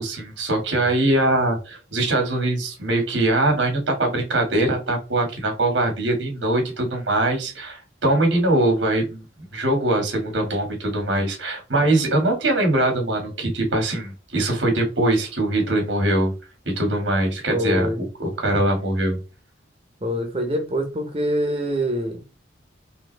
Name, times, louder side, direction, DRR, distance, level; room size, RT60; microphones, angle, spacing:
voice 1, 0.0-16.3 16.8-17.9 18.2-19.2, right 1 dB, 90° right, 2.1 m, -22 dB
voice 2, 17.5-18.1 20.0-22.2, equal, 30° right, 1.0 m, -25 dB
4.2 x 3.7 x 3.3 m
head